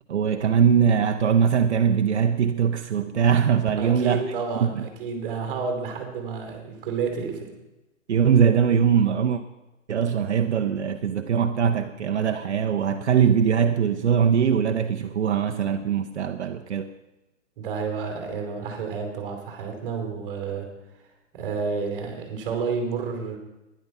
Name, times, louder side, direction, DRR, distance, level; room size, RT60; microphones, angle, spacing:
voice 1, 0.1-4.2 4.6-4.9 8.1-9.4 9.9-16.9, right 7 dB, 60° right, 0.9 m, -21 dB
voice 2, 3.8-7.5 17.6-20.7 21.3-23.4, right 5 dB, 15° right, 2.8 m, -30 dB
12.5 x 10.5 x 5.4 m
hypercardioid pair, 170°, 39 cm